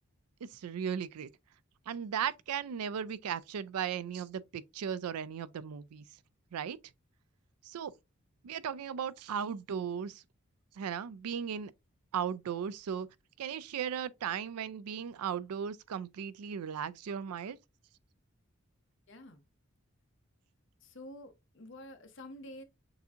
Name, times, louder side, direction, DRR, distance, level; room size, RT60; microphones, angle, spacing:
voice 1, 0.4-1.3 1.9-6.0 6.5-6.8 7.6-7.9 8.4-10.2 10.7-11.7 12.1-13.1 13.4-17.6, right 8 dB, 90° right, 0.4 m, -36 dB
voice 2, 19.1-19.4 20.8-22.6, left 1 dB, 55° left, 0.9 m, -49 dB
6.8 x 2.7 x 2.4 m
head